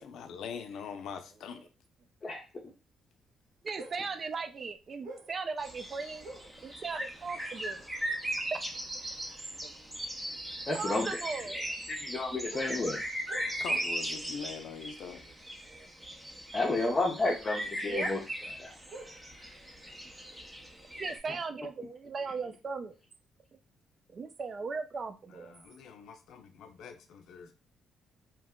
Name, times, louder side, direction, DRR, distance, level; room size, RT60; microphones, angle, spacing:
voice 1, 0.0-1.7 13.6-15.2 25.3-27.5, left 6 dB, 75° left, 8 dB, 0.5 m, -43 dB
voice 2, 3.6-6.3 6.6-7.9 8.5-8.6 9.6-9.7 10.7-11.9 15.7-15.9 17.8-18.2 20.3-20.4 21.0-22.9 24.1-25.5, right 4 dB, 40° right, 8 dB, 0.4 m, -38 dB
sound 1, 3.7-4.2 4.7-5.5 6.2-6.6 7.7-7.8 8.4-8.6 10.4-10.5 12.5-14.1 14.4-14.5 16.8-18.1 18.4-20.7 21.0-21.2, right 2 dB, 70° right, 1.6 m, -49 dB
sound 2, 5.6-21.2, right 1 dB, 10° right, 0.7 m, -38 dB
voice 3, 10.7-11.1 11.9-13.0 16.5-18.2 18.6-18.7, left 2 dB, 30° left, -2 dB, 0.7 m, -31 dB
2.8 x 2.1 x 3.6 m, 0.31 s
cardioid pair, 90°, 0 cm